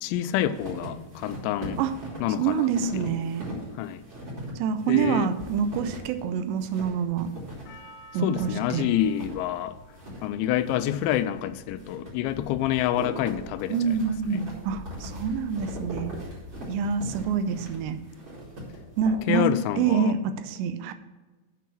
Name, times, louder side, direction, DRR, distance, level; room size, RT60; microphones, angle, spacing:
voice 1, 0.0-1.8 2.2-3.2 3.8-4.0 4.9-5.3 8.2-9.8 10.2-14.0 14.3-14.4 19.3-20.1, left 12 dB, 85° left, 13 dB, 2.7 m, -27 dB
sound 1, 0.5-19.7, equal, 30° right, 3.3 m, -40 dB
voice 2, 2.4-3.5 4.6-7.3 8.1-8.9 13.7-16.1 16.7-18.0 19.0-19.5 19.8-20.9, right 6 dB, 85° right, 10 dB, 2.6 m, -26 dB
Percussion, 7.7-12.0 12.7-12.8, equal, 65° left, 3.1 m, -53 dB
8.3 x 5.9 x 7.1 m, 1.2 s
omnidirectional pair, 5.5 m